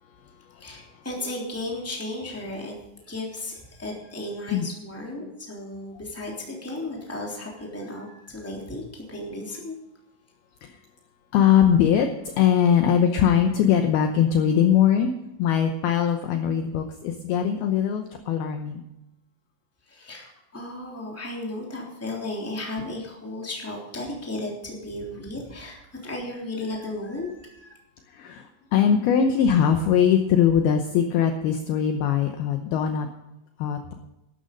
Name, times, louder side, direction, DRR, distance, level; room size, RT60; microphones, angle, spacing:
voice 1, 0.6-2.7 3.0-9.7 19.9-27.8, left 2 dB, 5° left, -2 dB, 2.3 m, -35 dB
voice 2, 11.3-12.1 12.4-15.1 15.4-18.8 28.1-28.4 28.7-33.1 33.6-33.9, left 8 dB, 80° left, 6 dB, 2.3 m, -21 dB
13.0 x 12.0 x 5.3 m, 0.92 s
omnidirectional pair, 5.5 m